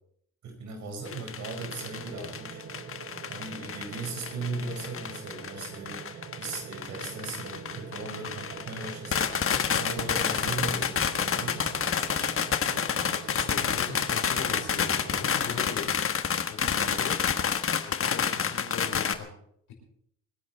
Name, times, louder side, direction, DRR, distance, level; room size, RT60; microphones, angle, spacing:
voice 1, 0.4-2.6 3.3-12.3 16.6-17.1, right 3 dB, 70° right, 4 dB, 5.0 m, -38 dB
sound 1, 1.1-19.1, left 7 dB, 45° left, 1.4 m, -29 dB
sound 2, 1.6-15.4, right 7 dB, 45° right, 1.1 m, -44 dB
voice 2, 13.0-17.2 17.8-19.3 19.7-19.8, left 6 dB, 85° left, 1 dB, 6.0 m, -40 dB
25.5 x 10.5 x 4.3 m, 0.68 s
cardioid pair, 90°, 30 cm